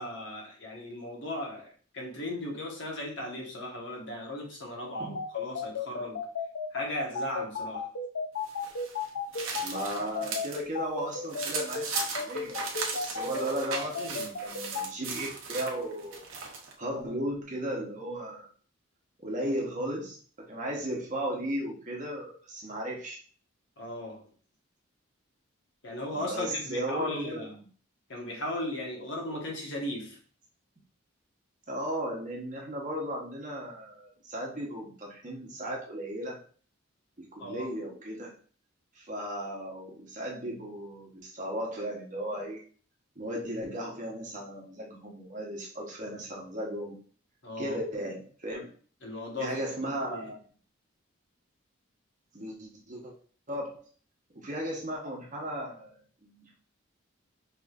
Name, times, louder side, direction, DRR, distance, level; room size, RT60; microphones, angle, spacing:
voice 1, 0.0-6.2 6.7-7.9 14.0-14.2 23.8-24.3 25.8-27.5 28.1-30.2 37.4-37.7 47.4-47.8 49.0-49.5 49.8-50.3, left 1 dB, 60° left, -1 dB, 1.2 m, -37 dB
sound 1, 4.9-14.9, left 5 dB, 90° left, 0.6 m, -33 dB
sound 2, 8.4-10.6 11.0-16.7, right 4 dB, 75° right, 0.8 m, -37 dB
voice 2, 9.6-11.9 12.2-12.6 12.9-16.2 16.8-18.5 19.2-23.2 26.1-27.5 31.7-36.4 37.2-38.3 39.0-42.6 43.2-47.0 47.6-48.7 49.4-50.4 52.3-53.1 53.5-53.8 54.3-56.5, right 1 dB, 40° right, -2 dB, 1.1 m, -36 dB
5.0 x 3.3 x 2.4 m, 0.43 s
head